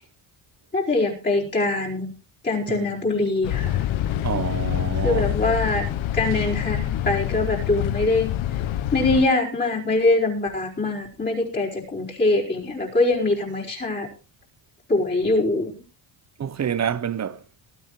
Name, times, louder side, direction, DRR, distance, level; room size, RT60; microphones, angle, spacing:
voice 1, 0.7-2.1 2.4-3.8 5.0-5.9 6.1-8.3 8.9-14.1 14.9-15.7, left 2 dB, 20° left, 4.6 m, -23 dB
sound 1, 3.4-9.3, left 12 dB, 70° left, 1.1 m, -26 dB
voice 2, 4.2-5.3 16.4-17.4, right 8 dB, 35° right, 0.8 m, -28 dB
20.0 x 13.0 x 3.2 m
cardioid pair, 150°, 48 cm